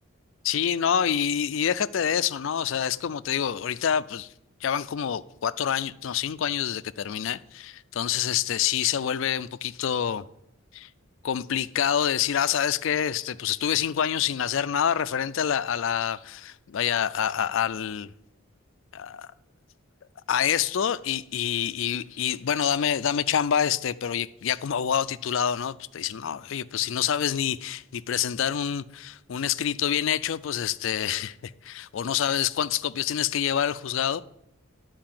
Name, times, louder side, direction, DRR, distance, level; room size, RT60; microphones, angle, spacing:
voice 1, 0.4-4.3 4.6-10.2 10.7-10.9 11.2-18.1 18.9-19.3 20.3-34.2, left 9 dB, 65° left, 0.4 m, -27 dB
10.5 x 4.7 x 7.5 m
head